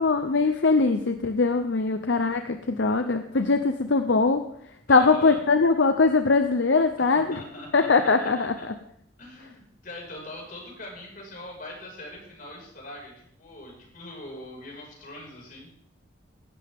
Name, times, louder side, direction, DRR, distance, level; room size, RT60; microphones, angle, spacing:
voice 1, 0.0-4.4 4.9-7.4 7.7-8.5, left 4 dB, 70° left, 7 dB, 0.8 m, -21 dB
voice 2, 4.9-5.4 7.1-8.7 9.2-15.7, left 1 dB, 45° left, -1 dB, 5.7 m, -42 dB
17.0 x 12.5 x 3.7 m, 0.72 s
head